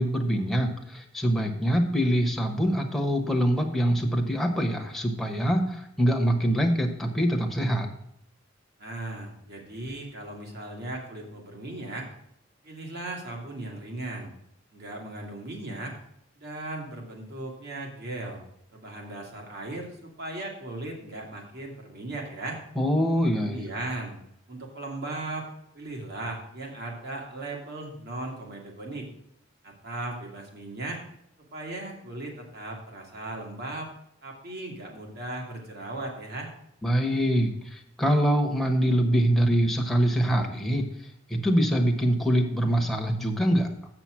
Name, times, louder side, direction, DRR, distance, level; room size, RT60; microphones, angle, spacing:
voice 1, 0.0-7.9 22.8-23.7 36.8-40.9 41.3-43.7, equal, ahead, 2 dB, 1.1 m, -24 dB
voice 2, 8.8-12.1 12.6-14.3 14.7-15.9 16.4-18.4 18.7-22.6 23.4-24.1 24.5-25.5 25.7-29.1 29.6-31.0 31.5-33.9 34.2-36.5, right 2 dB, 55° right, 0 dB, 2.2 m, -37 dB
7.8 x 6.0 x 6.2 m, 0.73 s
head